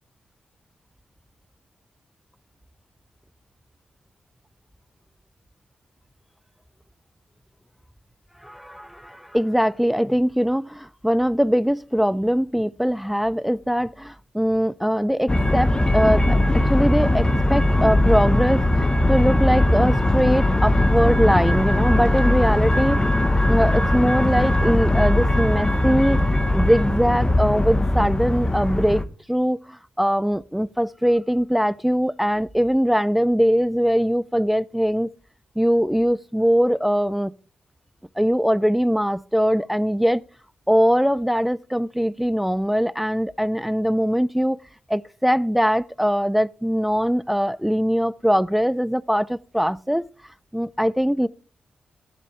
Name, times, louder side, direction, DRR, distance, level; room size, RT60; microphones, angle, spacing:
voice 1, 8.4-16.4 16.7-23.0 23.5-26.2 26.5-29.0 29.3-35.1 35.6-37.3 38.2-40.2 40.7-44.6 44.9-50.1 50.5-51.3, equal, 5° right, 0.5 m, -21 dB
sound 1, 15.3-29.0, left 1 dB, 20° left, 1.3 m, -20 dB
14.0 x 12.0 x 3.4 m
supercardioid pair, 45°, 4 cm